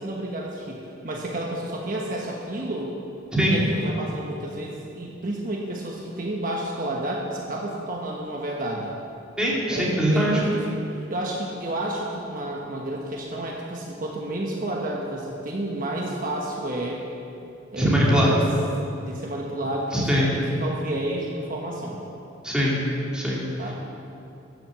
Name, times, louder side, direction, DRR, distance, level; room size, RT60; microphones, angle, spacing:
voice 1, 0.0-2.9 3.5-8.9 9.7-17.0 17.7-18.5 19.0-22.0 23.6-23.7, right 1 dB, 45° right, -1 dB, 1.2 m, -31 dB
voice 2, 9.4-10.4 17.8-18.3 19.9-20.3 22.4-22.8 23.1-23.4, equal, 5° right, -6 dB, 2.6 m, -21 dB
13.0 x 7.7 x 7.4 m, 2.7 s
head